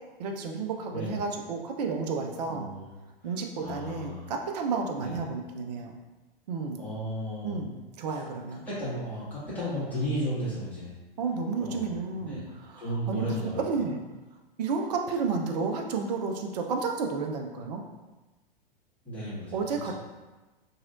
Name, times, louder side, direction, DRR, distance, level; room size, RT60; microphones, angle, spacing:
voice 1, 0.2-2.7 3.2-5.9 6.5-6.8 7.4-8.6 11.2-13.3 13.6-14.0 14.6-17.8 19.5-19.9, right 4 dB, 45° right, 3 dB, 0.4 m, -31 dB
voice 2, 2.5-2.8 3.6-4.3 5.0-5.2 6.8-7.6 8.6-10.9 11.6-12.5 12.8-13.6 19.0-19.9, equal, 5° left, -12 dB, 1.4 m, -34 dB
2.9 x 2.7 x 2.5 m, 1.2 s
figure-of-eight pair, 100°, 30 cm